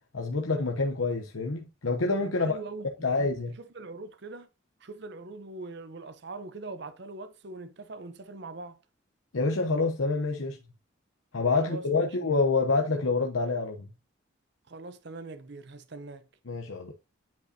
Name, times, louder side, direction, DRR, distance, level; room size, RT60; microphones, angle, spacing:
voice 1, 0.1-2.6 3.0-3.6 9.3-10.6 11.3-13.9 16.5-16.9, left 3 dB, 90° left, 0.9 m, -27 dB
voice 2, 2.2-3.3 3.7-4.5 4.8-8.8 11.6-12.4 14.7-16.3, right 3 dB, 55° right, 0.7 m, -42 dB
9.4 x 5.1 x 2.8 m
head